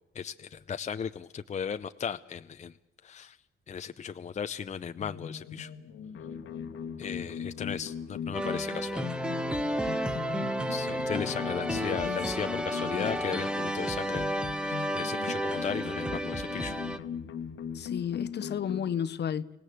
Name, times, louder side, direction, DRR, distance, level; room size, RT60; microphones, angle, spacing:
voice 1, 0.1-2.8 3.0-3.4 3.7-5.7 7.0-9.1 10.7-14.3 14.6-16.8, left 7 dB, 35° left, 0.7 m, -36 dB
sound 1, 4.9-19.0, left 7 dB, 75° left, 1.5 m, -39 dB
sound 2, 8.3-17.0, equal, 5° right, 1.3 m, -32 dB
voice 2, 11.8-12.2 12.9-13.1 17.7-19.5, left 8 dB, 60° left, 1.1 m, -33 dB
26.0 x 17.5 x 7.9 m
cardioid pair, 90°, 20 cm